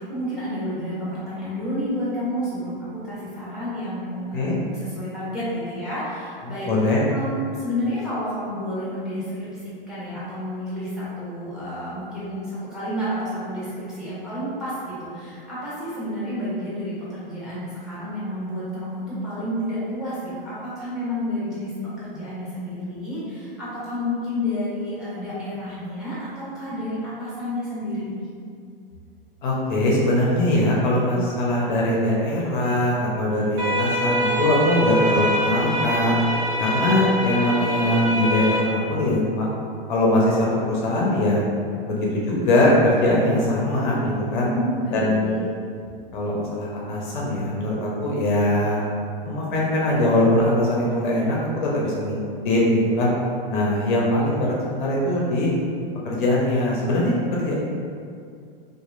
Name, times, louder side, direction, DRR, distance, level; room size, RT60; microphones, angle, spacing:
voice 1, 0.1-6.7 7.1-21.7 22.0-28.2 44.4-45.5, left 1 dB, ahead, -10 dB, 1.1 m, -30 dB
voice 2, 6.4-7.0 29.4-36.1 36.6-39.5 39.9-41.4 41.9-44.5 44.9-45.4 46.1-48.8 49.2-52.1 52.4-53.1 53.5-55.5 56.0-57.5, left 1 dB, 55° left, -4 dB, 0.6 m, -21 dB
sound 1, 33.6-38.6, equal, 80° right, 0.8 m, -24 dB
2.9 x 2.4 x 2.4 m, 2.3 s
hypercardioid pair, 110°, 29 cm